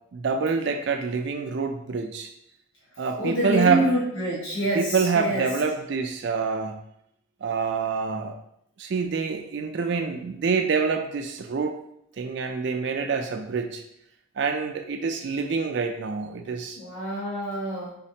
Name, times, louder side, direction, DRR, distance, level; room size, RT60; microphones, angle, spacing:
voice 1, 0.1-2.3 3.0-3.8 4.7-6.8 7.4-8.3 8.8-11.8 12.2-13.8 14.4-16.8, right 5 dB, 55° right, 4 dB, 0.3 m, -26 dB
voice 2, 3.2-5.5 16.8-17.9, right 1 dB, 75° left, -6 dB, 1.3 m, -27 dB
4.2 x 3.9 x 2.8 m, 0.75 s
head